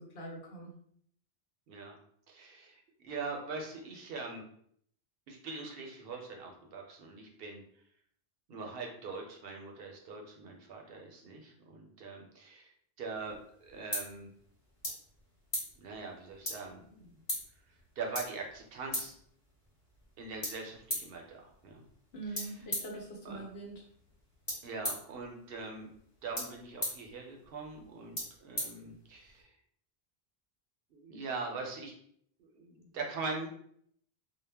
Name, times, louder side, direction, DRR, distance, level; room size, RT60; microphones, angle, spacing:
voice 1, 0.1-0.7 22.1-23.8, right 2 dB, 75° left, -1 dB, 1.0 m, -43 dB
voice 2, 2.3-4.4 5.3-7.6 8.5-12.7 13.0-14.3 15.8-17.2 18.0-19.2 20.2-21.8 22.3-22.5 23.2-23.4 24.6-25.9 26.2-29.5 30.9-31.9 32.4-33.5, right 4 dB, 70° right, 1 dB, 0.8 m, -42 dB
sound 1, 13.2-29.4, equal, 30° left, 1.1 m, -42 dB
2.2 x 2.1 x 3.3 m, 0.66 s
omnidirectional pair, 1.0 m